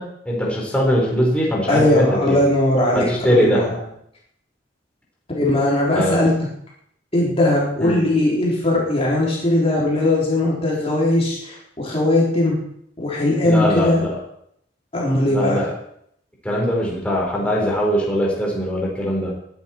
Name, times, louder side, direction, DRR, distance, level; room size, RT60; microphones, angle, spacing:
voice 1, 0.0-2.4 2.9-3.7 5.9-6.2 7.8-8.0 13.4-14.1 15.3-15.7 16.4-19.4, equal, 5° left, -4 dB, 4.2 m, -21 dB
voice 2, 1.7-3.7 5.3-6.3 7.1-12.5 13.0-14.0 14.9-15.7, left 1 dB, 35° left, -5 dB, 3.7 m, -19 dB
21.0 x 10.0 x 4.5 m, 0.71 s
head